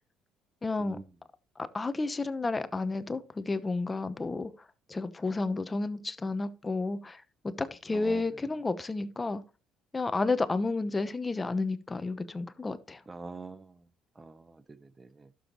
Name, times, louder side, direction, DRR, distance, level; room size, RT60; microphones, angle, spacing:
voice 1, 0.6-1.0 1.6-4.5 4.9-7.2 7.6-9.4 9.9-13.0, left 3 dB, 20° left, 0.9 m, -31 dB
voice 2, 7.9-8.2 13.1-13.8 14.2-15.3, right 3 dB, 20° right, 0.7 m, -45 dB
12.0 x 7.1 x 3.0 m
cardioid pair, 90°, 0 cm